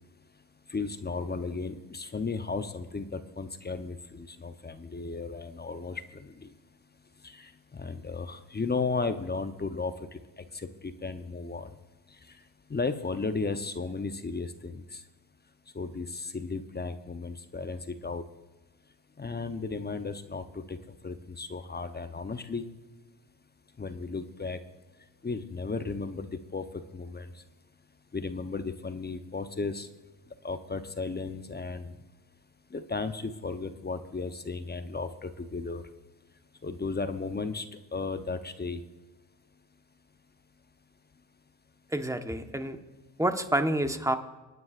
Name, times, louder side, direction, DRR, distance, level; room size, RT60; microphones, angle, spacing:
voice 1, 0.7-6.5 7.2-11.7 12.7-15.0 15.7-18.2 19.2-20.8 21.0-22.7 23.8-24.6 25.2-26.6 26.9-27.3 28.1-29.9 30.4-31.9 32.7-35.8 36.6-37.7 37.9-38.8, left 4 dB, 20° left, 9 dB, 0.9 m, -35 dB
voice 2, 41.9-42.8 43.2-44.2, right 1 dB, 5° right, 7 dB, 1.2 m, -28 dB
25.5 x 9.4 x 2.5 m, 1.2 s
supercardioid pair, 65°, 48 cm